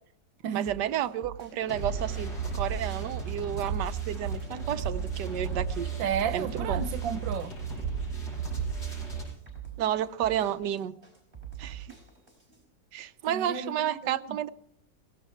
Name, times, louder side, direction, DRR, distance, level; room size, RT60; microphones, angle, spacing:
voice 1, 0.5-5.9 6.3-6.8 9.8-10.9 11.6-11.9 12.9-14.5, right 10 dB, 70° right, 1.3 m, -31 dB
sound 1, 0.6-12.6, right 9 dB, 25° right, 4.7 m, -45 dB
sound 2, 1.6-9.3, right 5 dB, 60° left, 7.8 m, -33 dB
voice 2, 6.0-7.5 13.3-14.4, right 8 dB, 90° right, 1.6 m, -33 dB
17.5 x 17.0 x 4.4 m
omnidirectional pair, 2.0 m